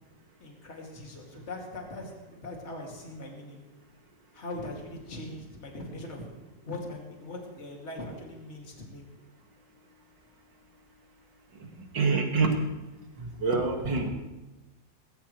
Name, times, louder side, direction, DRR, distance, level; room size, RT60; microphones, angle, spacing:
voice 1, 0.4-3.6 4.3-6.3 6.7-9.1, left 2 dB, 35° left, 0 dB, 2.7 m, -41 dB
voice 2, 11.6-12.6 13.2-14.1, right 4 dB, 70° right, 2 dB, 2.7 m, -27 dB
19.0 x 16.5 x 3.2 m, 1.1 s
omnidirectional pair, 2.0 m